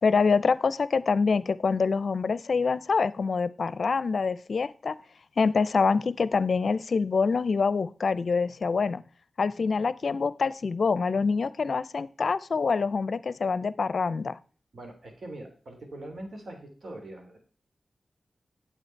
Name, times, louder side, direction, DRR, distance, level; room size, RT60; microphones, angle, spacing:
voice 1, 0.0-4.9 5.4-9.0 9.4-14.4, left 5 dB, 70° left, 17 dB, 0.5 m, -25 dB
voice 2, 14.7-17.4, right 1 dB, 65° right, 3 dB, 2.8 m, -42 dB
9.1 x 7.8 x 4.5 m, 0.39 s
cardioid pair, 45°, 0 cm